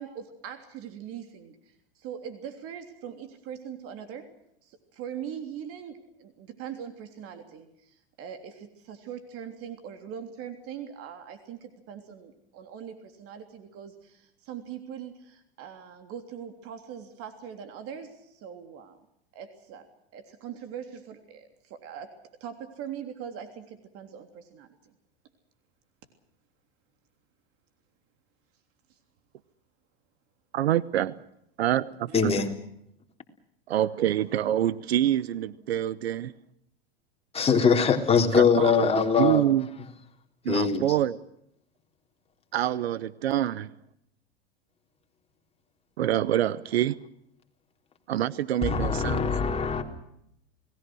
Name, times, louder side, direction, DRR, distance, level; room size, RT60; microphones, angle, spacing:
voice 1, 0.0-4.3 4.6-19.0 19.3-19.9 20.1-22.1 22.4-24.8 32.1-32.2, right 8 dB, 50° right, 3.3 m, -41 dB
voice 2, 30.5-31.2 31.6-32.3 33.7-36.3 38.3-39.7 40.4-41.2 42.5-43.7 46.0-47.0 48.1-49.6, right 12 dB, 80° right, 1.0 m, -26 dB
voice 3, 32.1-32.5 37.3-39.4 40.5-40.8 48.6-49.8, left 6 dB, 20° left, 3.8 m, -22 dB
29.5 x 19.0 x 6.3 m
hypercardioid pair, 105°, 31 cm